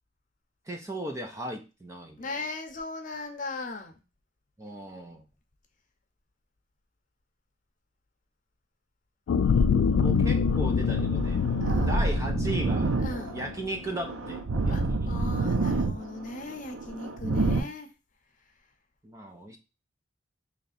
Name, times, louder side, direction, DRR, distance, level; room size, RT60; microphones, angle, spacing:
voice 1, 0.7-2.4 4.6-5.2 10.0-11.4 11.8-12.9 13.3-14.4 14.6-15.1 19.0-19.6, right 1 dB, 15° right, 0.5 m, -37 dB
voice 2, 2.2-4.0 11.6-12.1 13.0-13.4 14.7-17.9, left 3 dB, 40° left, 0.7 m, -38 dB
sound 1, 9.3-13.8 14.3-14.4, left 5 dB, 80° left, 0.3 m, -26 dB
sound 2, 10.5-17.6, right 3 dB, 85° right, 0.7 m, -28 dB
3.3 x 2.8 x 4.1 m
head